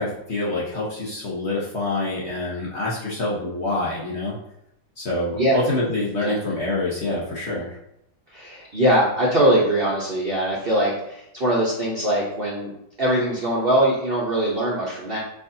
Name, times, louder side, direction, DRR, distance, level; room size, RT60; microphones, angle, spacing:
voice 1, 0.0-4.3 5.0-7.8, left 2 dB, 45° left, -5 dB, 1.1 m, -26 dB
voice 2, 8.3-12.7 13.0-15.2, right 1 dB, 40° right, -5 dB, 0.9 m, -21 dB
4.7 x 4.1 x 2.7 m, 0.77 s
omnidirectional pair, 1.9 m